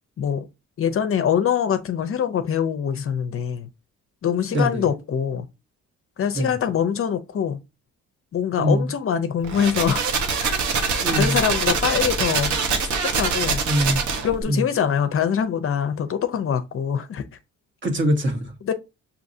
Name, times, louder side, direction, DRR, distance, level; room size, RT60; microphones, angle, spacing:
voice 1, 0.8-3.7 4.2-5.5 6.2-7.6 8.3-10.0 10.4-12.5 12.8-13.6 14.2-17.2 18.6-18.7, left 8 dB, 45° left, 0.6 m, -24 dB
voice 2, 4.5-4.8 6.3-6.5 8.6-8.9 11.0-11.4 13.7-14.0 14.5-14.6 17.8-18.5, equal, 40° right, 1.5 m, -22 dB
sound 1, 9.4-14.4, right 5 dB, 75° right, 1.0 m, -24 dB
6.2 x 2.7 x 2.6 m
cardioid pair, 90°, 30 cm